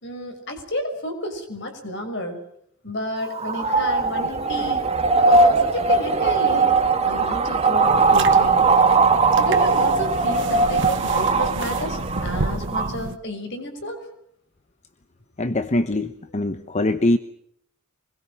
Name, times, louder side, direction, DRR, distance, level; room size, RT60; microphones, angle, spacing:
voice 1, 0.0-2.4 2.8-4.9 5.2-6.8 7.0-8.7 9.4-14.1 16.3-16.6, left 1 dB, 55° left, 5 dB, 6.1 m, -31 dB
sound 1, 3.2-13.0, right 4 dB, 30° right, 1.8 m, -19 dB
sound 2, 7.8-13.2, right 3 dB, 60° right, 1.4 m, -30 dB
voice 2, 15.4-17.2, left 1 dB, 35° left, 11 dB, 0.9 m, -22 dB
24.5 x 21.5 x 7.6 m, 0.72 s
head